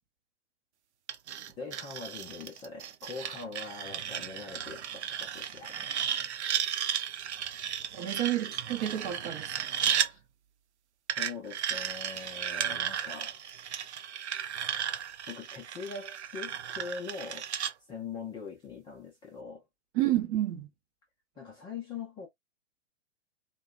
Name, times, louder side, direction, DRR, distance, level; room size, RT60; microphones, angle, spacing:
sound 1, 1.1-10.1 11.1-17.7, right 9 dB, 65° right, 0.5 m, -34 dB
voice 1, 1.6-5.9 9.9-10.2 11.2-13.4 15.3-17.5 17.9-19.6 21.4-22.3, left 4 dB, 15° left, 0.5 m, -42 dB
voice 2, 7.9-9.8 19.9-20.7, right 13 dB, 30° right, 0.7 m, -30 dB
2.8 x 2.2 x 2.3 m
hypercardioid pair, 120°, 36 cm